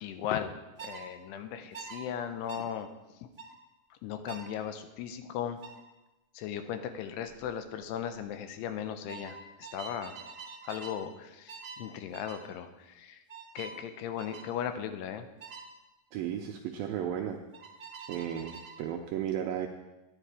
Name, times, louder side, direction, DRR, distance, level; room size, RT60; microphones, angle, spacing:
voice 1, 0.0-0.5 0.8-2.9 3.2-3.3 3.9-5.6 6.3-10.1 10.6-13.2 13.6-15.3, left 9 dB, 85° left, 9 dB, 2.8 m, -37 dB
sound 1, 0.8-1.0 1.7-2.0 2.5-2.7 3.4-3.6 4.3-4.5 5.6-5.8 7.3-7.5 7.8-8.2 9.1-11.0 11.5-11.8 12.1-12.4 13.3-13.8 14.2-14.5 15.4-15.7 17.5-18.8, right 5 dB, 35° right, 1.1 m, -45 dB
voice 2, 16.1-17.4 18.1-19.7, right 10 dB, 85° right, 4 dB, 2.1 m, -34 dB
11.0 x 9.5 x 4.8 m, 1.0 s
omnidirectional pair, 4.8 m